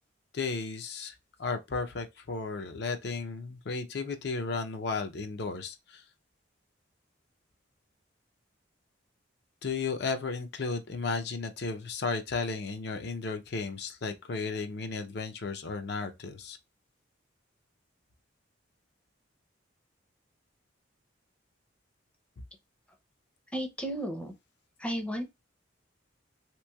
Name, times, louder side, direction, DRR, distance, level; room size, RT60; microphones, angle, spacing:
voice 1, 0.3-6.1 9.6-16.6, left 4 dB, 55° left, 0.5 m, -34 dB
voice 2, 23.5-24.3 24.8-25.2, equal, 5° left, 0.5 m, -33 dB
3.0 x 3.0 x 2.2 m
head